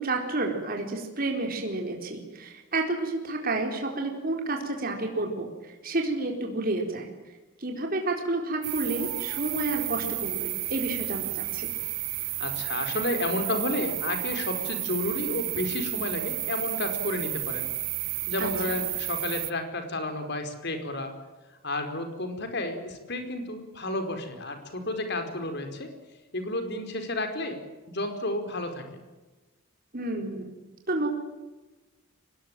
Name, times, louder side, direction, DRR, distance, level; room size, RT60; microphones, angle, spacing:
voice 1, 0.0-7.1 7.6-11.7 18.4-18.5 29.9-30.5 30.9-31.1, right 2 dB, 45° right, 2 dB, 4.2 m, -30 dB
sound 1, 8.6-19.5, right 18 dB, 85° right, 1.0 m, -32 dB
voice 2, 12.4-17.7 18.3-21.1 21.6-25.9 26.3-27.6 27.9-28.8, left 2 dB, 50° left, 7 dB, 4.8 m, -31 dB
24.0 x 20.0 x 9.1 m, 1.2 s
head